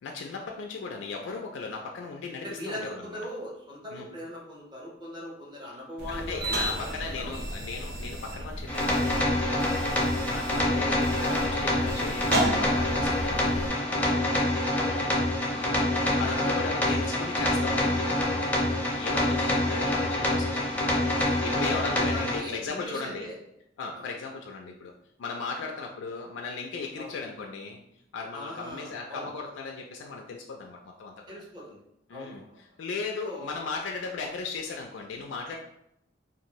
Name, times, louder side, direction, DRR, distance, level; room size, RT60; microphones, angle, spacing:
voice 1, 0.0-3.2 3.9-4.1 6.1-14.4 15.5-23.3 23.8-24.9 25.2-27.8 28.1-31.1 32.1-35.6, left 4 dB, 80° left, 1 dB, 0.3 m, -37 dB
voice 2, 2.4-7.5 14.7-15.3 21.8-23.4 23.9-24.1 27.0-27.2 28.3-29.3 31.3-31.8 32.1-32.7 33.2-33.5, equal, 25° right, -4 dB, 0.8 m, -40 dB
sound 1, 6.0-13.7, right 1 dB, 60° right, 0.6 m, -34 dB
sound 2, 8.7-22.4, left 1 dB, 10° left, 0.6 m, -26 dB
2.6 x 2.5 x 2.9 m, 0.77 s
head